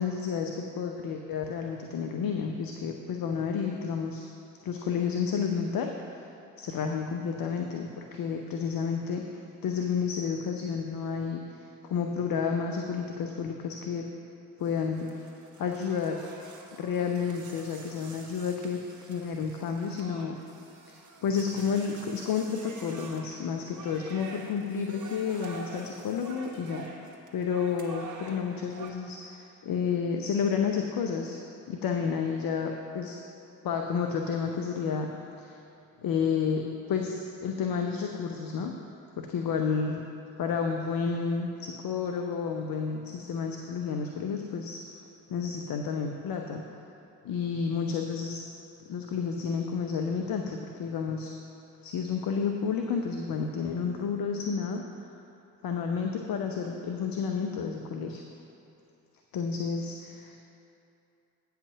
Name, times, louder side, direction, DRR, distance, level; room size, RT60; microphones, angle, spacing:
voice 1, 0.0-4.3 4.6-6.3 6.6-14.1 14.6-15.1 15.6-16.4 16.8-20.4 20.9-26.9 27.3-31.4 31.7-33.2 33.6-35.6 36.0-38.7 39.2-40.0 40.4-44.8 45.3-46.7 47.2-48.5 48.9-51.3 51.8-54.8 55.6-58.2 59.3-60.4, left 6 dB, 50° left, 3 dB, 0.8 m, -31 dB
sound 1, 14.6-28.9, right 4 dB, 40° right, 1.4 m, -47 dB
8.9 x 5.7 x 6.3 m, 2.7 s
hypercardioid pair, 45°, 43 cm